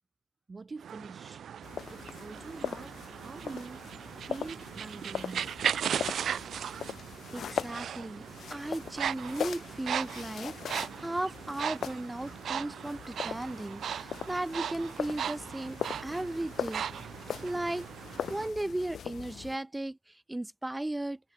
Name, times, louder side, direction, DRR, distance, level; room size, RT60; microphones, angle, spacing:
voice 1, 0.5-1.4 1.9-3.8 4.3-5.5 8.4-8.5, right 4 dB, 25° right, 6.1 m, -44 dB
sound 1, 0.8-18.5, right 8 dB, 55° right, 1.2 m, -38 dB
sound 2, 1.6-19.6, left 8 dB, 55° left, 2.0 m, -41 dB
voice 2, 7.3-8.2 8.5-16.8 17.4-17.9 18.3-21.2, right 1 dB, 10° right, 7.5 m, -36 dB
cardioid pair, 90°, 0 cm